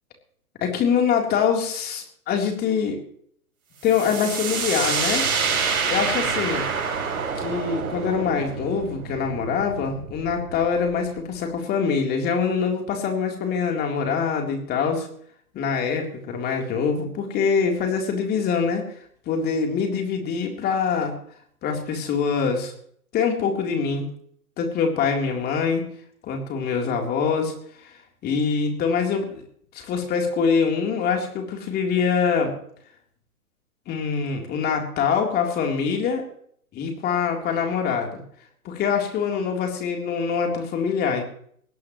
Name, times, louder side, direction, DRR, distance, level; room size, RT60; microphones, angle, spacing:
voice 1, 0.6-3.0 3.8-5.3 5.9-6.7 7.4-15.1 15.5-18.8 19.3-21.1 21.6-22.7 23.1-24.1 24.6-25.9 26.2-27.5 27.8-27.9 28.2-29.4 29.7-32.5 33.9-36.2 36.7-38.2 38.6-41.2, left 6 dB, 20° left, 2 dB, 3.8 m, -24 dB
sound 1, 3.8-11.4, right 5 dB, 65° right, 6.0 m, -27 dB
21.0 x 17.5 x 3.2 m, 0.62 s
figure-of-eight pair, 125°, 44 cm